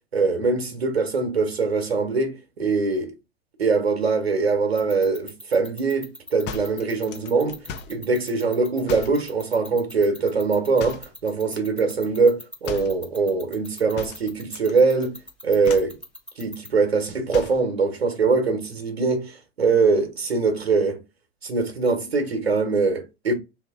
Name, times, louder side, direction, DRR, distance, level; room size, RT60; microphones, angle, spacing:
voice 1, 0.1-3.1 3.6-7.6 7.9-15.2 15.4-16.0 16.4-21.0 21.4-23.3, right 4 dB, 80° right, 1.1 m, -22 dB
sound 1, 4.8-16.7, left 1 dB, 5° left, 1.1 m, -39 dB
sound 2, 6.5-8.0 8.9-9.2 10.8-11.2 12.6-13.0 14.0-14.7 15.0-15.3 15.6-16.0 17.3-17.7, left 6 dB, 35° left, 0.7 m, -37 dB
3.1 x 2.8 x 3.5 m
figure-of-eight pair, 90°, 31 cm